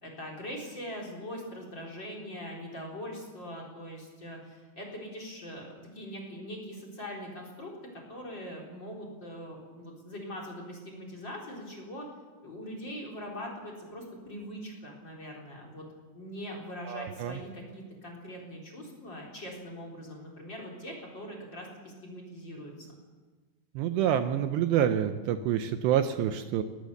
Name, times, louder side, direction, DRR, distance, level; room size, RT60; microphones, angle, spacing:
voice 1, 0.0-12.1 12.4-15.8 16.1-22.9, equal, 25° left, 1 dB, 4.1 m, -42 dB
voice 2, 16.9-17.3 23.8-26.6, right 10 dB, 80° right, 9 dB, 2.8 m, -27 dB
21.0 x 19.0 x 6.7 m, 1.4 s
omnidirectional pair, 5.2 m